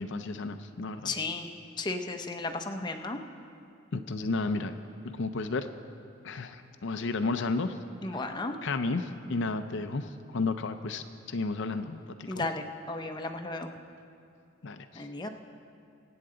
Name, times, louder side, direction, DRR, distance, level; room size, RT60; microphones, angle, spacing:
voice 1, 0.0-1.1 3.9-4.7 5.0-5.7 6.2-7.8 8.1-8.2 8.6-12.5 14.6-15.0, left 3 dB, 65° left, 8 dB, 0.5 m, -32 dB
voice 2, 1.0-1.5 1.8-3.2 8.0-8.6 12.3-13.7 15.0-15.3, left 2 dB, 20° left, 4 dB, 0.6 m, -34 dB
24.5 x 8.7 x 3.8 m, 2.5 s
head